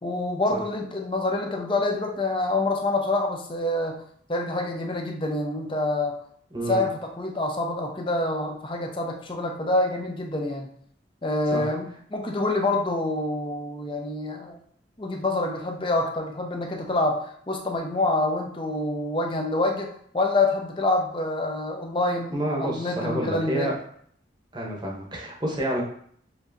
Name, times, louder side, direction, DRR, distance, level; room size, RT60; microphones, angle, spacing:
voice 1, 0.0-4.0 4.3-6.2 6.7-10.7 11.2-14.6 15.0-19.9 20.1-23.7, left 2 dB, 25° left, 2 dB, 0.6 m, -26 dB
voice 2, 22.3-23.8 24.5-25.8, right 1 dB, 25° right, -1 dB, 0.9 m, -28 dB
7.0 x 2.7 x 2.6 m, 0.63 s
head